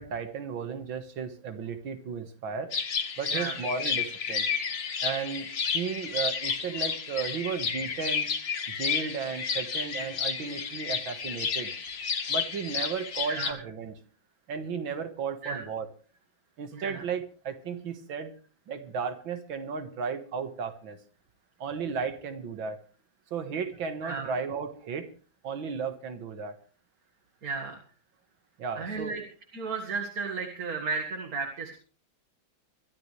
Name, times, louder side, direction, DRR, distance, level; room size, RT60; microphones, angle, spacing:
voice 1, 0.0-2.7 3.2-4.5 5.0-5.5 5.7-8.3 8.7-11.7 12.3-13.9 14.5-15.9 16.6-18.3 18.7-21.0 21.6-22.8 23.3-25.1 25.4-26.5 28.6-29.2, right 6 dB, 80° right, 8 dB, 2.3 m, -34 dB
sound 1, 2.7-13.5, left 6 dB, 70° left, 2.4 m, -31 dB
voice 2, 13.3-13.6 15.4-15.6 16.7-17.0 24.0-24.3 27.4-27.8 28.8-29.2 29.5-31.8, right 4 dB, 50° right, 1 dB, 2.3 m, -34 dB
24.5 x 12.5 x 3.3 m, 0.39 s
omnidirectional pair, 2.1 m